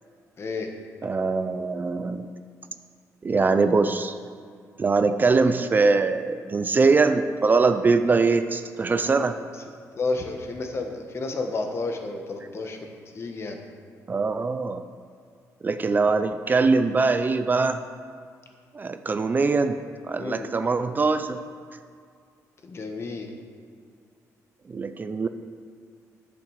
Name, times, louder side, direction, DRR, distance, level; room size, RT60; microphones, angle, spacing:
voice 1, 0.4-0.7 9.9-13.6 20.2-20.5 22.6-23.3, left 3 dB, 45° left, 4 dB, 1.2 m, -31 dB
voice 2, 1.0-2.3 3.2-4.2 4.8-9.4 14.1-14.8 15.6-17.8 18.7-21.4 24.7-25.3, right 4 dB, 30° right, 9 dB, 0.5 m, -22 dB
10.5 x 5.9 x 6.5 m, 2.2 s
cardioid pair, 105°, 6 cm